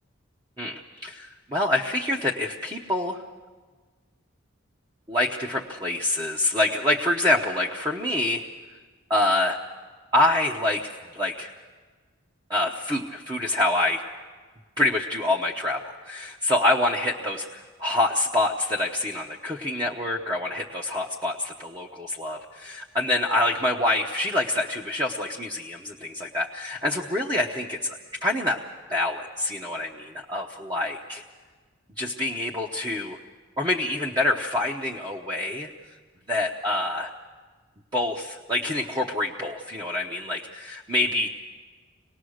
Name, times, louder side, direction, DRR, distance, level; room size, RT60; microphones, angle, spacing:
voice 1, 0.6-3.2 5.1-8.4 9.1-9.6 10.1-11.5 12.5-14.0 14.8-28.6 28.9-31.2 32.0-33.2 33.6-35.7 36.3-37.1 37.9-41.3, left 1 dB, 20° right, -1 dB, 0.9 m, -26 dB
25.5 x 18.5 x 6.4 m, 1.4 s
head